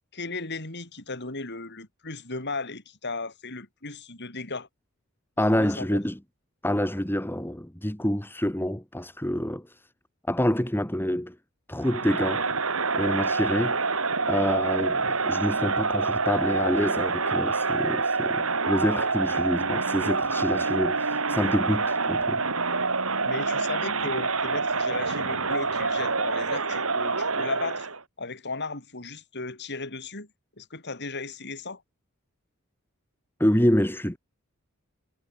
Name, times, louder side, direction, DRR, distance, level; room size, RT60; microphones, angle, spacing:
voice 1, 0.0-4.7 5.5-6.0 23.2-27.9 28.2-30.3 30.6-31.8, left 3 dB, 50° left, 5.1 m, -36 dB
voice 2, 5.4-6.2 6.6-9.8 10.3-11.4 11.7-12.5 12.9-13.8 14.3-22.4 33.4-34.2, equal, 10° left, 2.2 m, -27 dB
Crowd, 11.8-28.0, right 4 dB, 65° right, 4.6 m, -26 dB
head